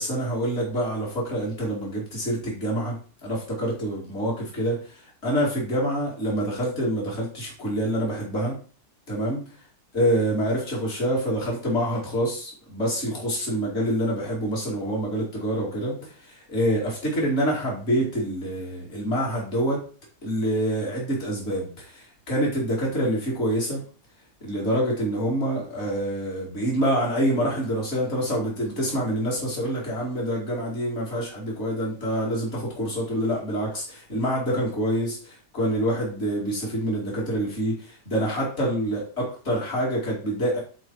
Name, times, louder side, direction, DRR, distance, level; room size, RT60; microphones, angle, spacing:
voice 1, 0.0-8.6 9.1-9.4 9.9-19.8 20.2-23.8 24.4-40.6, equal, 35° left, -4 dB, 2.9 m, -26 dB
7.2 x 4.3 x 4.6 m, 0.40 s
omnidirectional pair, 1.9 m